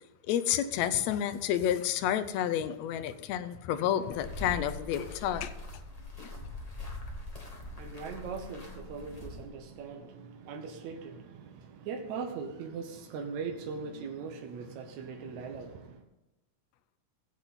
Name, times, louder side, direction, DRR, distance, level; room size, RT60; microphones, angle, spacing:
voice 1, 0.3-5.5, left 10 dB, 75° left, 1.9 m, -30 dB
sound 1, 4.1-9.7, left 2 dB, 25° left, 0.8 m, -42 dB
voice 2, 7.5-16.0, right 5 dB, 75° right, 2.3 m, -40 dB
17.0 x 8.0 x 4.2 m
omnidirectional pair, 3.4 m